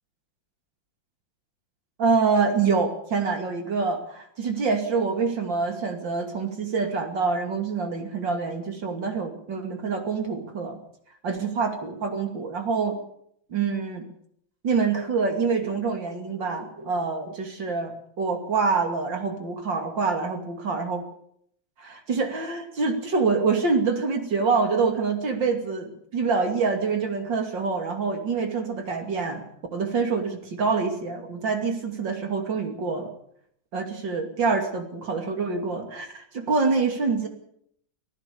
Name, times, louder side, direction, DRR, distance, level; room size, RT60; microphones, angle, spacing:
voice 1, 2.0-10.8 11.2-13.0 13.5-14.1 14.6-21.0 21.8-29.4 29.7-33.1 33.7-37.3, right 4 dB, 65° right, 5 dB, 3.3 m, -26 dB
25.0 x 15.0 x 7.0 m, 0.67 s
omnidirectional pair, 2.2 m